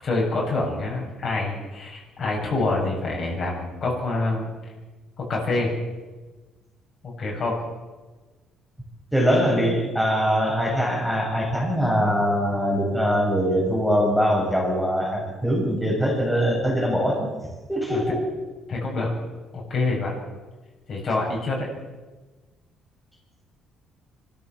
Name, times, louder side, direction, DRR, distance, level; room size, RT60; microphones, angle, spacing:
voice 1, 0.0-4.5 5.2-5.7 7.0-7.6 17.9-18.0 18.7-19.1 19.5-20.1 20.9-21.7, left 2 dB, 45° left, -1 dB, 7.6 m, -26 dB
voice 2, 9.1-17.3 17.7-18.2, equal, ahead, -3 dB, 7.0 m, -22 dB
24.5 x 14.0 x 7.6 m, 1.2 s
cardioid pair, 115°, 0 cm